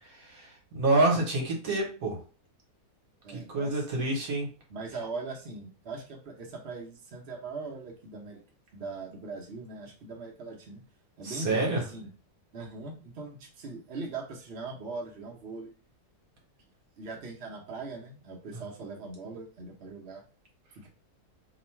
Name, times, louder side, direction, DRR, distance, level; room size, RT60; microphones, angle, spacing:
voice 1, 0.3-2.2 3.3-4.5 11.2-11.8, right 2 dB, 65° right, -1 dB, 1.4 m, -27 dB
voice 2, 3.2-3.9 4.7-8.4 8.7-10.8 11.2-12.1 12.5-15.7 17.0-20.2 20.7-20.9, right 3 dB, 45° right, -2 dB, 1.0 m, -40 dB
3.0 x 2.4 x 4.3 m, 0.38 s
omnidirectional pair, 1.7 m